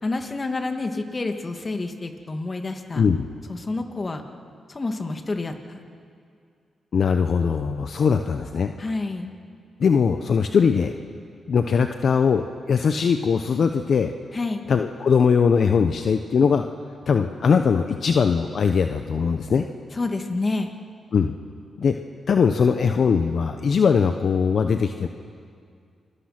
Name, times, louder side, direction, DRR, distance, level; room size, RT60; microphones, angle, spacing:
voice 1, 0.0-3.1 3.5-4.2 4.7-5.8 8.8-9.3 14.3-14.6 19.9-20.7, left 3 dB, 35° left, 5 dB, 2.4 m, -28 dB
voice 2, 2.9-3.3 6.9-8.7 9.8-10.9 11.5-14.1 14.7-16.6 17.1-19.7 21.1-21.3 21.8-22.0 22.3-25.1, left 6 dB, 65° left, 7 dB, 1.0 m, -20 dB
28.5 x 23.0 x 6.1 m, 2.3 s
supercardioid pair, 50°, 0 cm